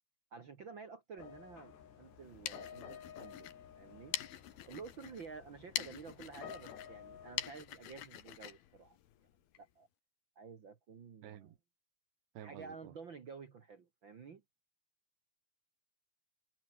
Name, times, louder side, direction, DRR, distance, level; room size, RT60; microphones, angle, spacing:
voice 1, 0.3-4.2 4.7-9.0 9.6-9.9 10.3-11.5 12.4-14.4, right 5 dB, 70° right, 1.1 m, -51 dB
sound 1, 1.2-7.5, left 8 dB, 80° left, 5.3 m, -53 dB
sound 2, 2.1-9.6, left 12 dB, 65° left, 3.3 m, -45 dB
voice 2, 11.2-11.6 12.4-12.9, right 11 dB, 90° right, 4.2 m, -51 dB
omnidirectional pair, 4.8 m